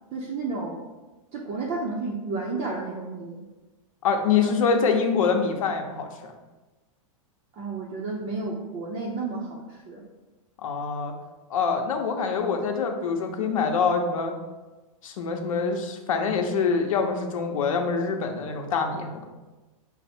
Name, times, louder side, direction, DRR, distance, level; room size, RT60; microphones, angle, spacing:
voice 1, 0.1-0.8 1.3-3.4 4.4-4.5 7.6-10.0, right 3 dB, 35° right, -3 dB, 0.6 m, -32 dB
voice 2, 4.0-6.3 10.6-11.1 11.5-14.3 15.0-19.2, left 5 dB, 75° left, 4 dB, 0.8 m, -25 dB
5.8 x 2.1 x 4.2 m, 1.2 s
supercardioid pair, 145°, 17 cm